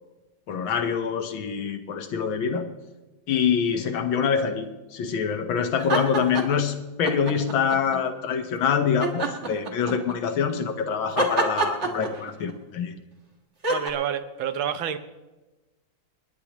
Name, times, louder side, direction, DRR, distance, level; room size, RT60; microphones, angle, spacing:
voice 1, 0.5-2.7 3.3-4.7 4.9-12.9, left 7 dB, 80° left, 7 dB, 1.8 m, -25 dB
sound 1, 5.8-6.6 7.0-8.0 9.0-10.2 11.2-12.5 13.6-13.9, right 3 dB, 40° right, 1.7 m, -26 dB
voice 2, 13.7-15.0, right 9 dB, 90° right, 10 dB, 1.7 m, -28 dB
29.0 x 9.9 x 3.0 m, 1.1 s
omnidirectional pair, 2.1 m